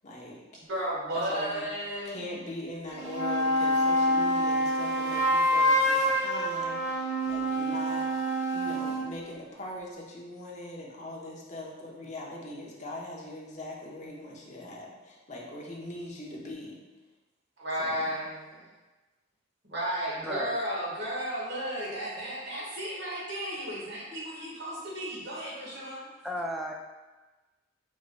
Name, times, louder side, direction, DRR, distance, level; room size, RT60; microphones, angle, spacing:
voice 1, 0.0-0.5 1.1-1.6 2.0-8.1 8.5-16.8 17.8-18.2, left 1 dB, 35° left, -3 dB, 0.8 m, -41 dB
voice 2, 0.5-2.3 17.6-18.6 19.7-26.1, equal, 55° right, -6 dB, 1.4 m, -34 dB
sound 1, 2.9-9.1, equal, 35° right, 0.7 m, -26 dB
voice 3, 20.2-20.6 26.2-26.7, equal, ahead, 1 dB, 0.3 m, -34 dB
4.8 x 3.9 x 2.2 m, 1.2 s
head